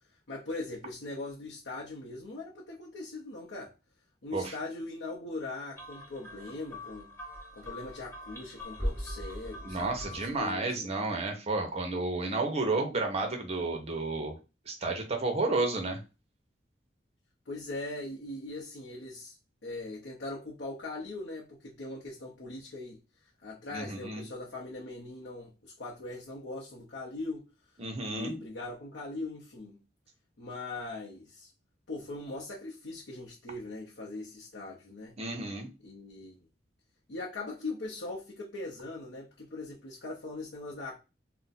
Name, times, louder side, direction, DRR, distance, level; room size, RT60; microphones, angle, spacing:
voice 1, 0.3-3.7 4.2-7.1 7.5-10.9 17.5-19.3 19.6-23.0 23.4-27.4 28.0-29.8 30.4-31.5 31.9-35.2 35.8-36.5 37.1-41.0, left 2 dB, 85° left, 0.7 m, -40 dB
sound 1, 5.8-10.5, equal, 15° left, 0.9 m, -40 dB
voice 2, 9.6-14.4 14.7-16.0 23.7-24.2 27.8-28.3 35.2-35.7, right 3 dB, 35° right, 0.7 m, -31 dB
2.5 x 2.1 x 3.9 m
head